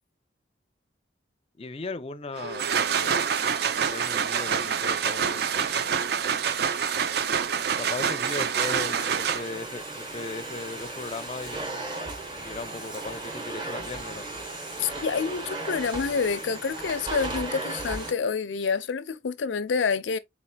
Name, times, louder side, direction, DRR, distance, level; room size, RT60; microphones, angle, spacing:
voice 1, 1.6-3.3 3.8-5.9 7.5-11.7 12.4-14.3, left 3 dB, 30° left, 0.5 m, -38 dB
sound 1, 2.4-9.7, right 7 dB, 60° right, 0.4 m, -26 dB
Domestic sounds home sounds, 7.4-18.1, right 2 dB, 25° right, 1.0 m, -36 dB
voice 2, 14.8-20.2, left 5 dB, 85° left, 0.5 m, -28 dB
4.3 x 4.2 x 2.2 m
head